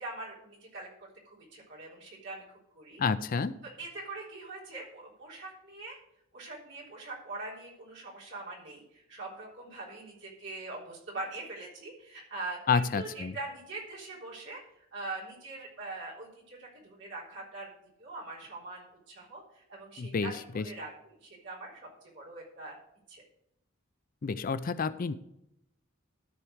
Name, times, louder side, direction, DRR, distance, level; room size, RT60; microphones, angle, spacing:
voice 1, 0.0-3.0 3.6-6.0 6.3-14.6 14.9-17.7 18.0-21.9 22.1-22.8 23.1-23.2, right 2 dB, 60° right, -4 dB, 3.7 m, -43 dB
voice 2, 3.0-3.5 12.7-13.3 20.0-20.7 24.2-25.1, left 5 dB, 45° left, 14 dB, 0.4 m, -29 dB
13.0 x 4.5 x 6.3 m, 0.81 s
head